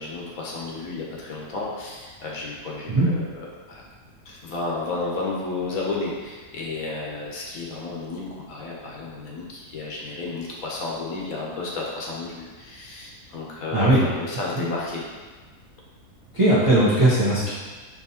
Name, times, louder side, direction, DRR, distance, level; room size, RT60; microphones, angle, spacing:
voice 1, 0.0-3.8 4.3-15.0, left 3 dB, 65° left, -3 dB, 1.1 m, -32 dB
voice 2, 13.7-14.0 16.3-17.5, right 1 dB, 35° right, -11 dB, 0.5 m, -18 dB
4.8 x 2.7 x 2.8 m, 1.4 s
omnidirectional pair, 1.7 m